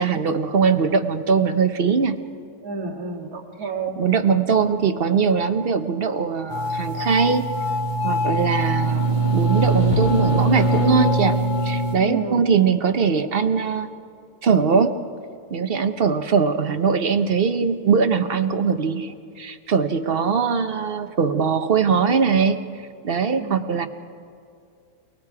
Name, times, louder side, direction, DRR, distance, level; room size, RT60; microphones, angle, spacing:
voice 1, 0.0-2.2 4.0-7.4 8.0-13.9 14.4-15.0 15.5-22.6 23.0-23.9, right 6 dB, 45° right, 9 dB, 0.9 m, -21 dB
voice 2, 2.6-4.0 12.0-12.4 23.3-23.6, right 5 dB, 80° right, -3 dB, 2.7 m, -30 dB
sound 1, 6.5-11.9, right 1 dB, 30° left, 2.3 m, -21 dB
28.5 x 18.5 x 4.8 m, 2.4 s
omnidirectional pair, 1.6 m